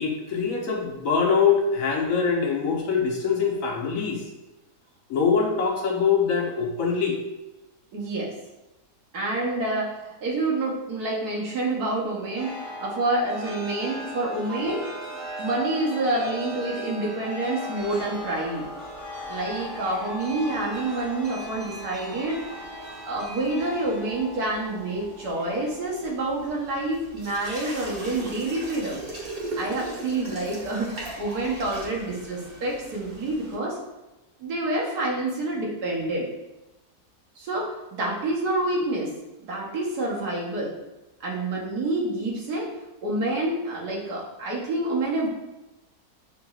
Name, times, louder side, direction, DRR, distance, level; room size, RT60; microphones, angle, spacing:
voice 1, 0.0-4.2 5.1-7.2, left 6 dB, 65° left, 0 dB, 1.1 m, -23 dB
voice 2, 7.9-8.3 9.1-14.9 15.4-18.6 19.3-22.4 23.0-29.0 29.6-33.8 34.4-36.3 37.4-39.1 39.5-40.7 41.2-42.7 43.0-45.3, right 2 dB, 75° right, -3 dB, 1.5 m, -28 dB
Chime, 12.3-26.6, equal, 10° right, 1.2 m, -38 dB
sound 1, 17.8-33.6, right 1 dB, 40° right, 1.2 m, -41 dB
6.7 x 3.0 x 2.4 m, 1.0 s
omnidirectional pair, 1.7 m